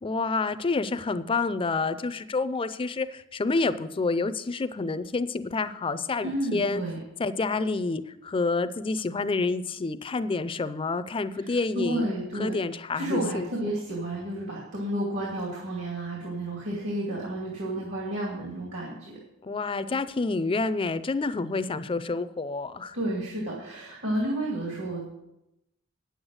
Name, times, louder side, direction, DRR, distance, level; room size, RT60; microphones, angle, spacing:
voice 1, 0.0-6.8 7.2-13.5 19.4-23.0, left 3 dB, 25° left, 14 dB, 0.4 m, -28 dB
voice 2, 6.2-7.0 11.4-12.6 13.0-19.2 22.9-25.0, right 1 dB, 70° right, -3 dB, 2.5 m, -31 dB
9.4 x 8.0 x 6.3 m, 0.89 s
head